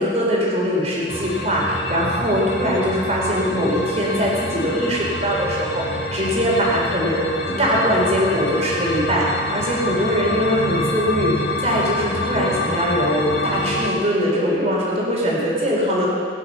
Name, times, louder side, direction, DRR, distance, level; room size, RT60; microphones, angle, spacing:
voice 1, 0.0-11.3 11.6-16.1, equal, 40° right, -4 dB, 4.0 m, -21 dB
sound 1, 1.1-13.9, left 1 dB, 65° left, 1.6 m, -26 dB
17.5 x 10.5 x 5.8 m, 2.2 s
head